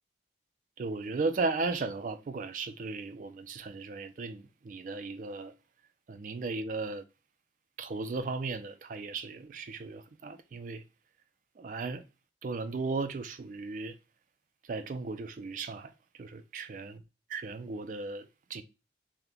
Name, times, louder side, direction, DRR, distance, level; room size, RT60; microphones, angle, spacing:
voice 1, 0.8-5.5 6.1-7.0 7.8-10.8 11.6-12.0 12.4-14.0 14.6-16.9 17.3-18.6, right 3 dB, 45° right, 0.3 m, -36 dB
2.9 x 2.1 x 3.6 m
head